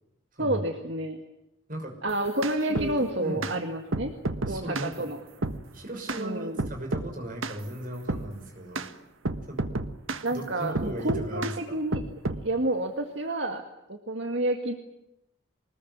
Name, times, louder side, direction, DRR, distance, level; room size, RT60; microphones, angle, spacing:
voice 1, 0.4-1.2 2.0-4.1 4.5-5.2 6.2-6.6 10.2-12.0 12.4-13.6 13.9-14.8, right 1 dB, 65° right, 4 dB, 2.0 m, -29 dB
sound 1, 2.1-2.9 3.4-3.6 3.9-4.9 5.4-5.6 6.1-6.2 6.6-7.1 7.4-7.6 8.1-8.3 8.8-8.9 9.3-10.3 10.8-11.6 11.9-12.4, right 2 dB, 80° right, 1.5 m, -30 dB
voice 2, 2.6-3.5 4.5-5.1 5.7-8.9 9.5-9.7 10.3-11.8, right 1 dB, 45° right, 1 dB, 6.0 m, -37 dB
24.5 x 20.5 x 9.6 m, 0.86 s
head